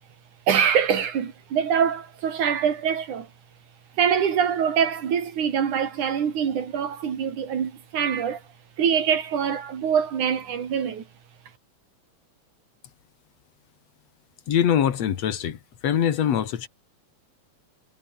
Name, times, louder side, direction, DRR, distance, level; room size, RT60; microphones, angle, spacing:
voice 1, 0.5-3.3 4.0-8.4 8.8-11.0, right 7 dB, 80° right, 4.0 m, -24 dB
voice 2, 14.5-16.7, left 9 dB, 60° left, 2.8 m, -23 dB
omnidirectional pair, 3.4 m